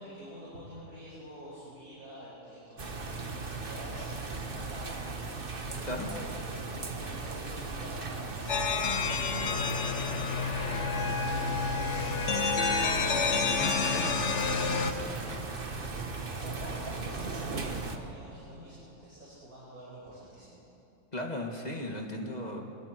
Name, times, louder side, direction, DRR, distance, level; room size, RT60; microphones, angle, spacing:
voice 1, 0.0-5.0 5.6-8.7 9.1-12.5 13.2-15.3 16.3-20.6, equal, 75° right, -8 dB, 6.3 m, -47 dB
sound 1, 2.8-18.0, right 3 dB, 40° right, 1.4 m, -37 dB
sound 2, 8.5-14.9, left 5 dB, 55° left, 1.4 m, -29 dB
voice 2, 13.6-14.2 21.1-22.6, left 1 dB, 30° left, 1 dB, 2.2 m, -36 dB
28.5 x 25.5 x 4.6 m, 2.7 s
omnidirectional pair, 1.5 m